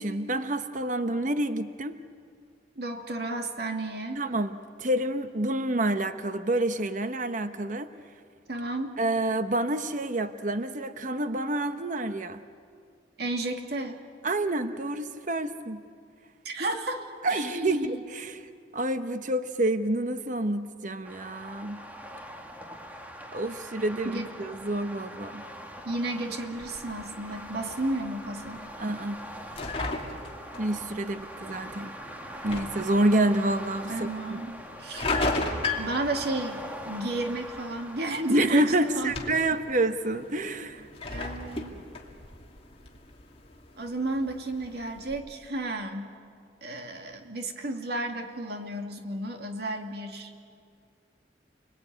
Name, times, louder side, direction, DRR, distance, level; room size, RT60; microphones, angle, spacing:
voice 1, 0.0-2.0 4.1-7.9 9.0-12.4 14.2-15.8 17.2-21.8 23.3-25.4 28.8-29.2 30.6-31.9 32.4-34.4 38.3-40.9, right 1 dB, 45° right, 10 dB, 0.9 m, -28 dB
voice 2, 2.8-4.2 8.5-9.0 13.2-14.0 16.4-17.0 17.3-17.9 24.0-24.3 25.8-28.7 33.9-35.1 35.8-39.1 41.1-41.8 43.8-46.2 46.6-50.3, right 2 dB, 60° right, 4 dB, 2.4 m, -33 dB
sound 1, 21.0-39.5, equal, 10° right, 1.8 m, -43 dB
sound 2, 26.6-45.2, left 2 dB, 30° left, 2.6 m, -37 dB
30.0 x 21.0 x 9.4 m, 2.2 s
head